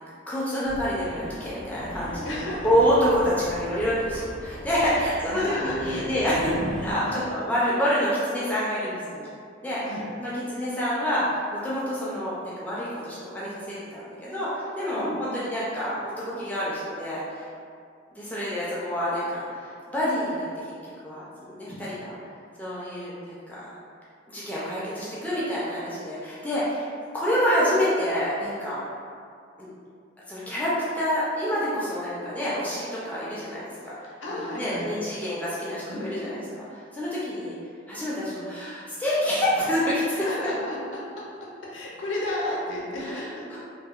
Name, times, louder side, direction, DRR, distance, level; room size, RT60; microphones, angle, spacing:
voice 1, 0.3-6.5 6.8-9.3 9.6-9.8 10.2-16.0 16.3-17.5 18.1-20.5 20.8-21.3 21.5-22.1 22.6-23.7 24.3-26.9 27.1-28.8 29.6-29.7 30.3-33.6 34.0-35.9 36.2-36.6 36.9-37.6 37.9-40.2 43.1-43.2 43.5-43.6, equal, 10° left, -9 dB, 0.3 m, -27 dB
sound 1, 0.6-6.9, equal, 70° right, 0.7 m, -38 dB
voice 2, 2.2-2.7 4.8-6.0 6.5-6.7 7.0-7.2 9.8-10.0 15.0-15.3 34.2-34.9 35.9-36.3 40.1-41.0 41.7-43.4, left 1 dB, 75° left, -4 dB, 0.5 m, -33 dB
2.7 x 2.0 x 2.3 m, 2.3 s
head